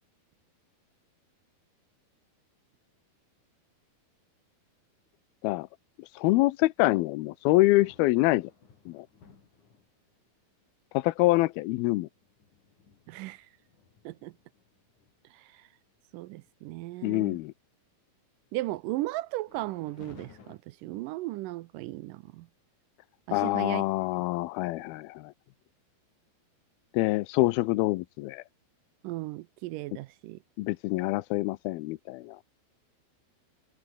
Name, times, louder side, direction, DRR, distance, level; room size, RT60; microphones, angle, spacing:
voice 1, 6.0-8.5 8.9-9.1 10.9-12.1 17.0-17.5 23.3-25.3 26.9-28.4 30.6-32.4, left 19 dB, 80° left, 2.5 m, -26 dB
sound 1, 7.2-10.2 10.9-11.0 11.5-15.1 15.6-15.8 16.1-16.5 16.9-17.7 19.5-20.6, left 6 dB, 50° left, 5.1 m, -57 dB
voice 2, 13.1-13.5 14.1-14.3 15.3-15.7 16.1-17.4 18.5-22.5 23.3-23.8 29.0-30.4, right 18 dB, 80° right, 1.9 m, -36 dB
omnidirectional pair, 4.4 m